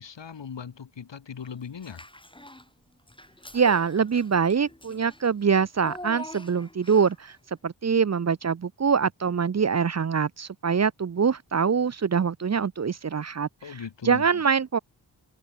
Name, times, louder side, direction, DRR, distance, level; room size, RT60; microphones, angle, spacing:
voice 1, 0.0-2.0 13.6-14.4, left 7 dB, 80° left, 2.2 m, -39 dB
Child speech kid speaking / Bathtub (filling or washing), 1.8-2.7 3.1-7.3, left 1 dB, 10° left, 6.9 m, -44 dB
voice 2, 3.5-7.4 7.6-14.8, right 6 dB, 40° right, 0.6 m, -24 dB
open air
wide cardioid pair, 120°, 43 cm